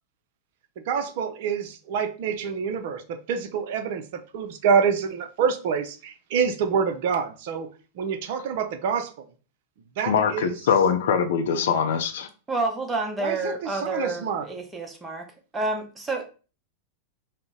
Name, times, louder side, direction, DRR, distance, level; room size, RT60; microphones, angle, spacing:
voice 1, 0.9-7.7 8.0-9.2 10.0-10.5 13.2-14.5, right 6 dB, 50° right, 7 dB, 0.5 m, -26 dB
voice 2, 10.1-12.3, left 7 dB, 60° left, 7 dB, 0.5 m, -22 dB
voice 3, 12.5-15.3 15.5-16.3, right 3 dB, 15° right, 3 dB, 0.8 m, -29 dB
3.8 x 2.1 x 3.6 m, 0.35 s
figure-of-eight pair, 90°, 0 cm